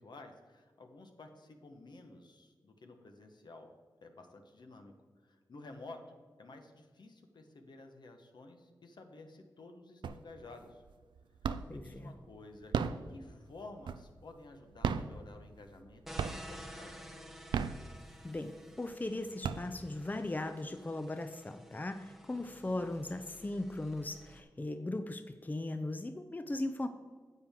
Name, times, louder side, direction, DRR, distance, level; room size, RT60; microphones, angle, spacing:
voice 1, 0.0-3.7 4.0-4.9 5.2-6.0 6.4-10.8 11.7-12.8 13.1-17.5, left 2 dB, 70° left, 5 dB, 1.1 m, -52 dB
sound 1, 10.0-10.5 10.9-11.9 12.5-14.3 14.7-15.9 16.2-16.7 17.3-18.4 18.9-19.0 19.2-20.1, right 6 dB, 85° right, 0.3 m, -35 dB
voice 2, 11.7-12.1 18.2-26.9, left 2 dB, 20° left, 9 dB, 0.5 m, -38 dB
sound 2, 16.0-24.4, equal, ahead, 1.0 m, -52 dB
9.7 x 7.4 x 3.6 m, 1.5 s
cardioid pair, 45°, 8 cm